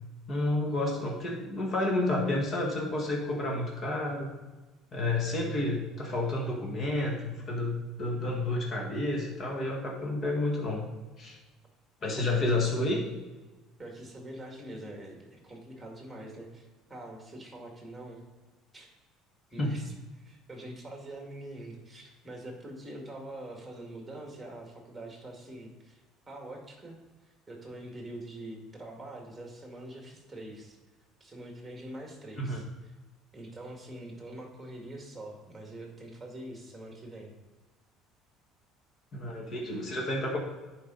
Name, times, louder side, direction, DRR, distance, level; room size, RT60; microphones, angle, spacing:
voice 1, 0.3-4.3 4.9-10.9 11.2-11.4 12.0-13.0 19.6-19.7 32.4-32.6 39.1-40.4, left 2 dB, 35° left, 0 dB, 1.7 m, -30 dB
voice 2, 12.2-12.6 13.8-18.2 18.7-18.9 19.5-26.0 26.3-27.0 27.5-30.8 31.2-32.7 33.3-37.3, right 1 dB, 10° right, 1 dB, 2.1 m, -44 dB
10.5 x 4.8 x 4.0 m, 1.2 s
cardioid pair, 130°, 0 cm